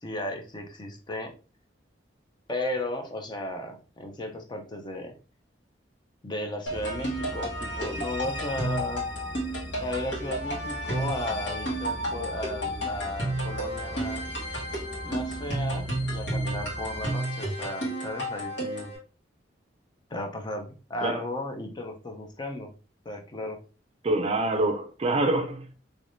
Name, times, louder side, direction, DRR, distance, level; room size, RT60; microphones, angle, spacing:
voice 1, 0.0-1.3 2.5-5.1 6.2-9.1 9.8-14.3 15.0-18.9 20.1-22.7 23.0-23.6, left 1 dB, 25° left, 0.5 m, -35 dB
sound 1, 6.7-19.0, right 1 dB, 80° left, 1.7 m, -32 dB
sound 2, 6.7-17.1, equal, 10° right, 1.0 m, -41 dB
voice 2, 24.0-25.7, right 2 dB, 35° right, 0.4 m, -26 dB
3.3 x 3.1 x 2.5 m
head